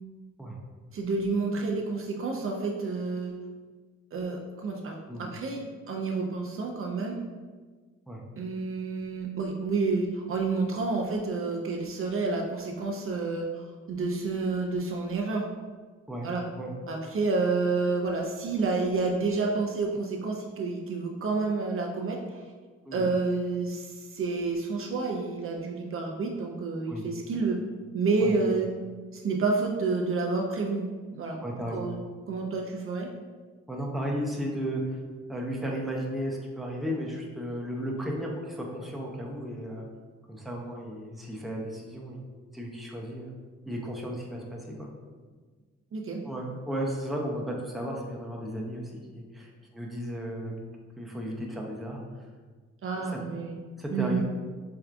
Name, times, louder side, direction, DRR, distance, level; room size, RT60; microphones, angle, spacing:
voice 1, 0.9-3.3 4.1-7.2 8.4-13.6 13.9-15.5 16.2-16.4 16.9-22.4 22.9-27.6 27.9-28.7 29.1-31.4 31.7-32.0 32.3-33.1 45.9-46.2 52.8-53.5 53.9-54.2, right 3 dB, 50° right, 0 dB, 0.4 m, -29 dB
voice 2, 31.4-31.9 33.7-34.8 35.3-39.9 40.3-42.2 42.5-43.3 43.7-44.9 46.2-50.5 51.0-52.0 53.0-53.2 53.8-54.2, equal, ahead, -2 dB, 0.5 m, -34 dB
4.5 x 2.3 x 2.5 m, 1.4 s
cardioid pair, 90°, 29 cm